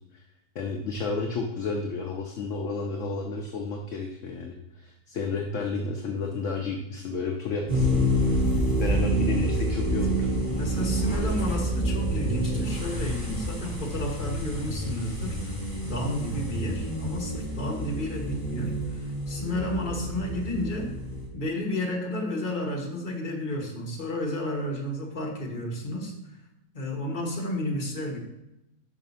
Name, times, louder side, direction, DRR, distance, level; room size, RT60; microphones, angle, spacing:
voice 1, 0.5-8.4 8.8-10.3, left 4 dB, 60° left, 2 dB, 1.0 m, -32 dB
sound 1, 7.7-21.3, right 1 dB, 30° right, 3.1 m, -28 dB
voice 2, 10.5-20.9 21.3-26.3 26.7-28.2, left 1 dB, 35° left, -1 dB, 1.4 m, -32 dB
5.6 x 5.0 x 5.5 m, 0.87 s
omnidirectional pair, 1.6 m